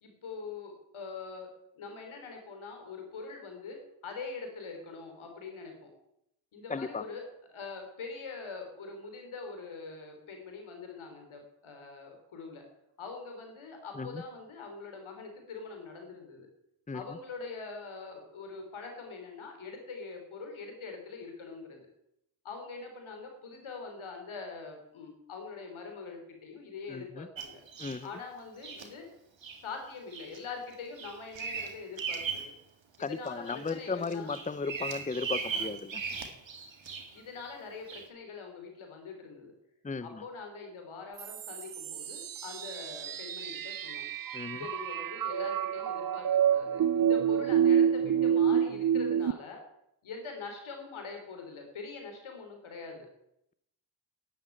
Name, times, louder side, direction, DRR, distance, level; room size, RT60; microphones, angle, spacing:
voice 1, 0.0-1.5 1.7-5.9 6.5-12.6 13.0-16.5 16.9-21.8 22.4-27.6 28.0-29.1 29.6-32.5 33.0-34.3 37.1-39.6 40.0-44.0 44.5-49.6 50.0-53.1, left 4 dB, 85° left, 3 dB, 3.6 m, -43 dB
voice 2, 6.7-7.1 13.9-14.2 16.9-17.0 26.9-27.3 27.8-28.1 33.0-36.0 39.8-40.2 44.3-44.7, left 4 dB, 15° left, 16 dB, 0.7 m, -36 dB
Bird vocalization bird call bird song, 27.4-28.0 28.6-28.9 29.4-29.6 30.1-30.4 30.7-32.5 32.9-33.7 34.0-37.2 37.9-38.1, right 6 dB, 70° right, 2.1 m, -38 dB
sound 1, 41.2-49.3, right 8 dB, 45° right, 0.6 m, -28 dB
11.0 x 9.4 x 9.0 m, 0.80 s
supercardioid pair, 40°, 47 cm